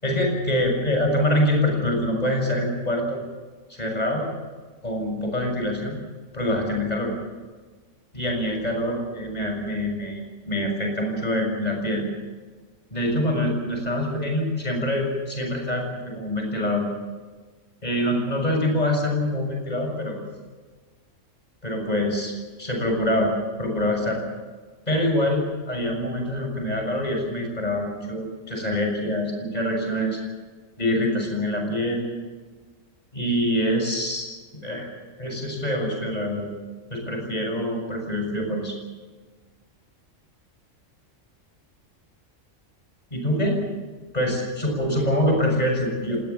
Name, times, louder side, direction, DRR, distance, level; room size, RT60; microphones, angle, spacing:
voice 1, 0.0-3.2 3.7-4.3 4.8-6.0 6.3-7.1 8.1-10.2 10.5-12.1 12.9-16.9 17.8-20.2 21.6-22.3 22.6-23.3 23.6-24.2 24.9-30.2 30.8-32.1 33.1-34.9 35.2-36.5 36.9-38.8 43.1-43.6 44.1-46.2, left 1 dB, 30° left, 2 dB, 7.1 m, -25 dB
26.0 x 20.0 x 7.2 m, 1.4 s
omnidirectional pair, 1.5 m